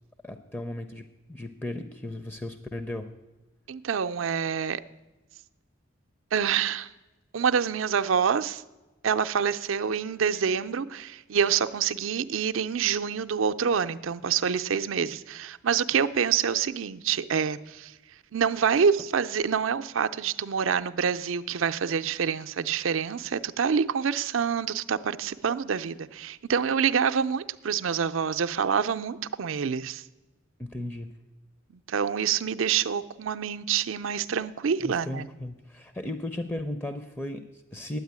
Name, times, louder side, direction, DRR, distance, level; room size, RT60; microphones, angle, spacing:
voice 1, 0.2-3.1 30.6-31.2 34.8-38.0, left 1 dB, 10° left, 0.5 m, -36 dB
voice 2, 3.7-4.8 6.3-6.9 7.3-8.6 9.0-17.9 18.3-30.0 31.7-35.3, right 7 dB, 75° right, 0.5 m, -27 dB
9.3 x 8.8 x 9.4 m
head